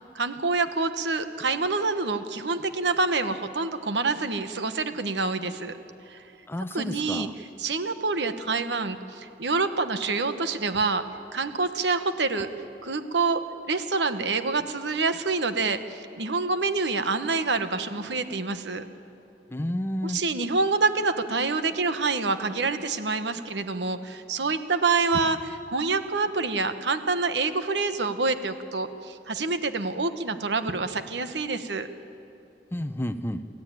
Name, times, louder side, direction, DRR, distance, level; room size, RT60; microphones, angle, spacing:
voice 1, 0.1-5.8 6.1-6.2 6.7-11.0 11.3-12.5 12.8-13.4 13.7-18.8 20.0-31.9, right 3 dB, 75° right, 10 dB, 1.2 m, -27 dB
voice 2, 6.5-7.3 19.5-20.2 32.7-33.4, equal, 15° left, 10 dB, 0.7 m, -31 dB
28.0 x 14.5 x 9.1 m, 2.8 s
head